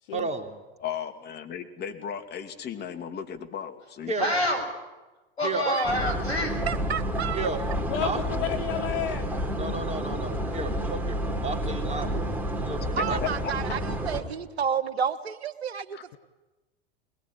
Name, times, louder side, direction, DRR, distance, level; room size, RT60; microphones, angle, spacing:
voice 1, 0.1-0.5 4.1-4.2 5.4-5.8 7.3-7.6 8.0-8.2 9.6-13.3, right 3 dB, 20° right, 4 dB, 3.4 m, -33 dB
voice 2, 0.8-4.1 13.0-13.5 15.9-16.0, left 8 dB, 30° left, 6 dB, 2.8 m, -35 dB
voice 3, 4.2-4.6 5.4-6.6, left 1 dB, 85° left, 6 dB, 7.0 m, -27 dB
sound 1, 5.8-14.2, equal, 5° right, 4.3 m, -30 dB
voice 4, 6.6-7.5 13.0-16.2, right 7 dB, 80° right, 11 dB, 1.5 m, -30 dB
voice 5, 7.9-9.3, left 10 dB, 60° left, 9 dB, 1.3 m, -31 dB
22.5 x 22.0 x 10.0 m, 1.1 s
hypercardioid pair, 90°, 32 cm